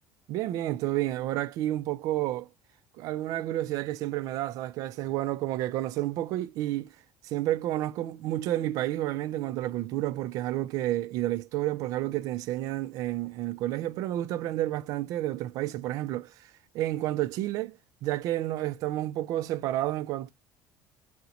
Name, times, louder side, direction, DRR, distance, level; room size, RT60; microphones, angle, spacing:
voice 1, 0.3-2.5 3.0-6.9 7.2-16.5 16.7-20.3, right 14 dB, 60° right, 0.4 m, -30 dB
2.8 x 2.1 x 3.7 m
cardioid pair, 170°, 7 cm